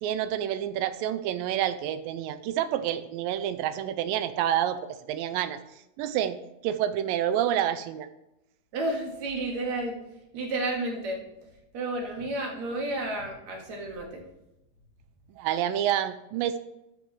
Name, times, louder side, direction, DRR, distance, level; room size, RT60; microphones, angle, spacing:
voice 1, 0.0-5.6 6.0-6.4 6.6-8.1 15.4-16.6, right 11 dB, 85° right, 11 dB, 2.3 m, -28 dB
voice 2, 8.7-10.0 10.3-11.2 11.7-14.2, right 2 dB, 55° right, 0 dB, 2.8 m, -31 dB
13.0 x 6.6 x 3.2 m, 0.89 s
omnidirectional pair, 4.0 m